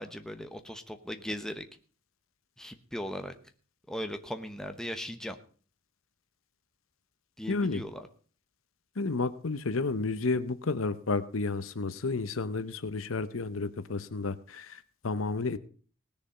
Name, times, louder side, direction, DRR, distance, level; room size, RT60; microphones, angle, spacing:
voice 1, 0.0-1.6 2.6-3.3 3.9-5.4 7.4-8.1, equal, 5° left, 7 dB, 1.0 m, -38 dB
voice 2, 7.5-7.8 9.0-15.6, left 3 dB, 75° left, 13 dB, 0.8 m, -31 dB
18.5 x 7.0 x 5.6 m, 0.41 s
head